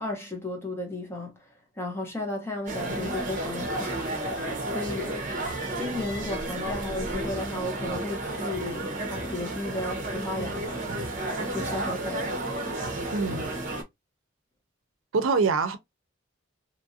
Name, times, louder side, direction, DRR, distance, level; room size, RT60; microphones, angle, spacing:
voice 1, 0.0-1.3 1.8-5.2 5.7-10.9 11.4-12.5, left 2 dB, 10° left, 0.9 m, -34 dB
sound 1, 2.7-13.8, right 1 dB, 40° right, 0.8 m, -32 dB
voice 2, 13.1-13.5 15.1-15.8, right 4 dB, 90° right, 0.6 m, -24 dB
3.0 x 2.5 x 2.6 m
head